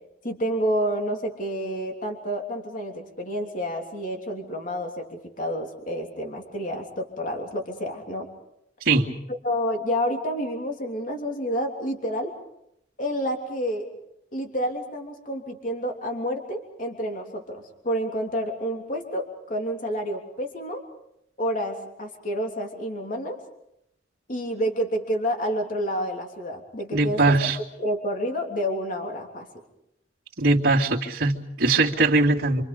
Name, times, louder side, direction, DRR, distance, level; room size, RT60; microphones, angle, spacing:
voice 1, 0.2-8.3 9.4-12.3 13.0-13.9 14.3-20.8 21.4-23.4 24.3-27.4 27.8-29.5, equal, 50° left, 2 dB, 3.2 m, -29 dB
voice 2, 8.8-9.1 26.9-27.6 30.4-32.6, right 3 dB, 65° right, -7 dB, 2.5 m, -21 dB
28.0 x 26.0 x 5.3 m, 0.78 s
head